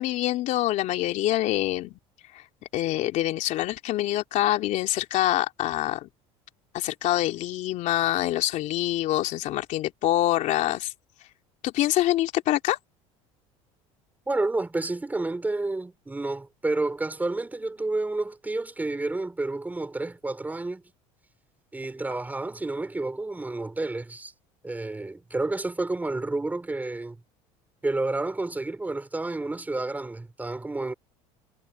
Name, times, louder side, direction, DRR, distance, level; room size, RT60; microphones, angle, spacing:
voice 1, 0.0-2.0 2.3-2.4 2.7-6.1 6.7-10.9 11.6-12.8, left 14 dB, 60° left, 3.1 m, -25 dB
voice 2, 14.3-20.8 21.7-24.3 24.6-27.2 27.8-30.9, right 2 dB, 10° right, 4.3 m, -30 dB
supercardioid pair, 110°, 14 cm